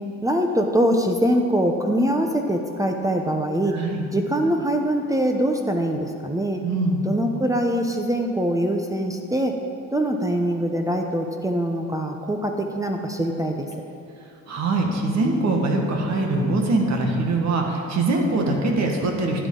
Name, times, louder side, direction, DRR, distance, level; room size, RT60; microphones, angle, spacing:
voice 1, 0.2-3.8 4.1-6.6 7.0-9.6 9.9-13.7, right 1 dB, 10° right, 3 dB, 0.8 m, -23 dB
voice 2, 3.7-4.0 6.6-7.0 14.5-19.5, right 2 dB, 65° right, 1 dB, 1.7 m, -23 dB
12.0 x 9.1 x 3.9 m, 2.6 s
cardioid pair, 90°, 30 cm